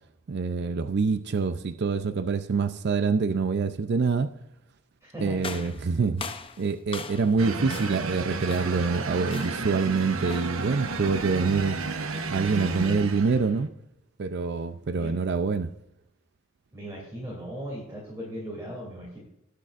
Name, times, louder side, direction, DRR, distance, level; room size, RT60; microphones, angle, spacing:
voice 1, 0.3-4.3 5.2-6.2 6.6-11.8 12.3-13.7 14.2-15.7, right 4 dB, 55° right, 11 dB, 0.5 m, -26 dB
voice 2, 5.0-5.7 15.0-15.1 16.7-19.2, right 1 dB, 15° right, -5 dB, 2.9 m, -38 dB
sound 1, 5.4-7.4 7.7-8.1 8.5-8.9 9.3-9.7 10.3-10.6, left 5 dB, 25° left, 0.6 m, -39 dB
sound 2, 7.4-13.7, right 3 dB, 80° right, 0.9 m, -32 dB
19.5 x 6.7 x 2.5 m, 0.81 s
head